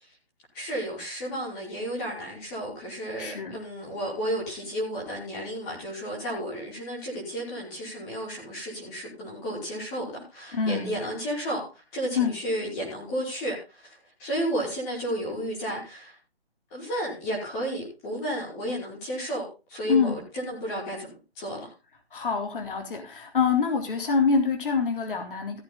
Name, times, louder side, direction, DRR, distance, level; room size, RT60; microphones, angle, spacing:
voice 1, 0.5-16.2 16.7-21.7, equal, 15° left, -3 dB, 5.1 m, -32 dB
voice 2, 3.2-3.6 10.5-10.9 12.2-12.3 19.9-20.2 22.1-25.6, left 5 dB, 55° left, 3 dB, 3.6 m, -25 dB
16.5 x 8.2 x 3.9 m, 0.29 s
hypercardioid pair, 170°, 32 cm